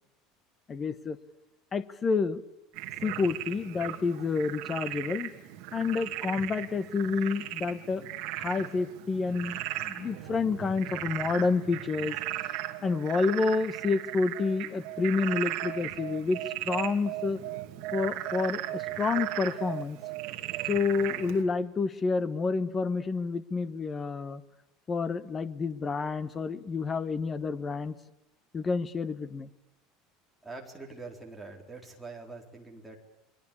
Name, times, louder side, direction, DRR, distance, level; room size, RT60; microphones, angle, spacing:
voice 1, 0.7-1.2 1.7-2.4 3.0-5.3 5.7-8.1 8.3-12.2 12.8-16.4 16.6-17.4 17.9-20.0 20.7-24.4 24.9-27.9 28.5-29.5, left 4 dB, 15° left, 15 dB, 1.2 m, -29 dB
Frog, 2.8-21.4, right 15 dB, 50° right, 2.7 m, -37 dB
voice 2, 30.4-33.0, right 3 dB, 5° right, -1 dB, 4.1 m, -44 dB
30.0 x 23.5 x 8.6 m, 0.97 s
cardioid pair, 180°, 0 cm